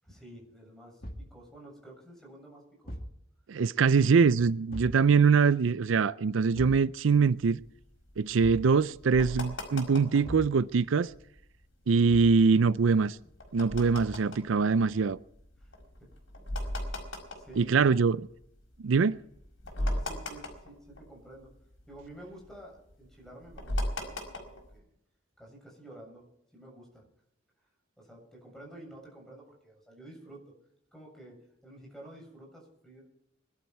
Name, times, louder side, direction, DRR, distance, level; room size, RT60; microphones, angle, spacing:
voice 1, 0.0-2.9 15.6-15.7 17.3-18.0 19.8-21.5 21.9-24.9 25.4-26.3 26.5-27.0 28.0-30.4 30.9-33.1, right 1 dB, ahead, 7.4 m, -50 dB
Thump thud, 1.0-1.4 2.8-3.2 4.7-5.0 6.5-6.9 8.4-8.7 10.2-10.6 12.1-12.4 13.9-14.3, equal, 50° left, 2.3 m, -41 dB
voice 2, 3.5-7.6 8.2-11.1 11.9-13.2 13.5-15.2 17.6-18.2 18.8-19.2, right 5 dB, 80° right, 0.5 m, -23 dB
sound 1, 7.2-10.4 10.8-10.9 11.1-11.4 11.8-18.5 19.0-19.1 19.3-21.5 21.7-24.8, left 1 dB, 80° left, 5.2 m, -37 dB
22.0 x 12.0 x 4.7 m
head